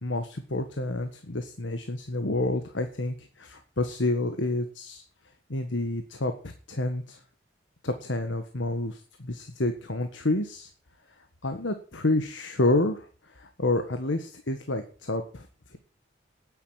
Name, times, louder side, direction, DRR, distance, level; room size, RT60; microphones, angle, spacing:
voice 1, 0.0-5.0 5.5-7.2 7.8-10.7 11.4-15.8, left 2 dB, 75° left, 7 dB, 1.5 m, -29 dB
9.9 x 8.9 x 9.0 m, 0.40 s
head